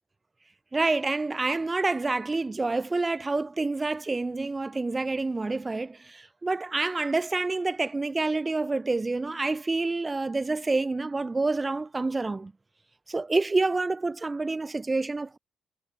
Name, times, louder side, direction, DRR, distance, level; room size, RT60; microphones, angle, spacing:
voice 1, 0.7-12.5 13.1-15.4, right 3 dB, 20° right, 0.5 m, -28 dB
cardioid pair, 90°, 0 cm